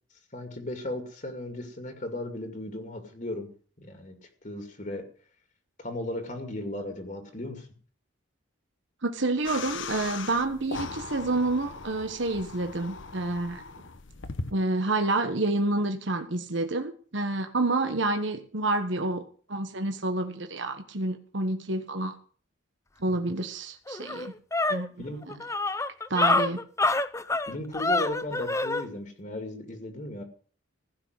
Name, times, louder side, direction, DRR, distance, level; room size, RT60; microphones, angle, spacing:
voice 1, 0.3-3.5 3.8-5.0 5.8-7.7 25.0-25.4 27.5-30.2, left 1 dB, 40° left, 5 dB, 2.4 m, -36 dB
voice 2, 9.0-13.6 14.5-22.1 23.0-24.3 24.7-24.9 26.1-26.6, right 2 dB, 65° right, 6 dB, 1.3 m, -28 dB
sound 1, 9.4-14.5, left 4 dB, 70° left, 1.1 m, -39 dB
sound 2, 23.4-23.5 23.9-28.9, left 2 dB, 15° left, 0.6 m, -27 dB
16.0 x 6.5 x 9.6 m, 0.43 s
head